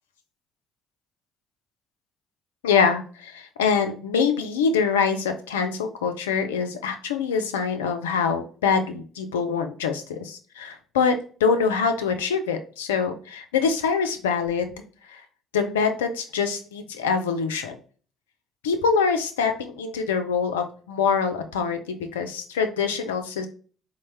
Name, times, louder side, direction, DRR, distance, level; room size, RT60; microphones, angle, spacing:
voice 1, 2.6-14.7 15.1-15.2 15.5-17.8 18.6-23.5, left 5 dB, 85° left, 7 dB, 0.4 m, -24 dB
4.0 x 2.1 x 3.3 m, 0.40 s
hypercardioid pair, 50°, 0 cm